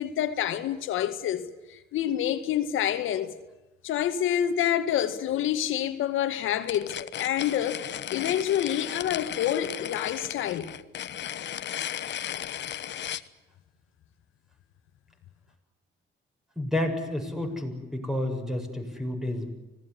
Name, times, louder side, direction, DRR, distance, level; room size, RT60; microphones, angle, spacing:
voice 1, 0.0-1.4 1.7-3.3 3.8-10.7, left 10 dB, 85° left, 2.0 m, -27 dB
sound 1, 6.6-13.3, left 10 dB, 65° left, 1.2 m, -35 dB
voice 2, 16.6-19.5, left 1 dB, ahead, 7.2 m, -30 dB
26.0 x 18.5 x 9.9 m
cardioid pair, 90°, 20 cm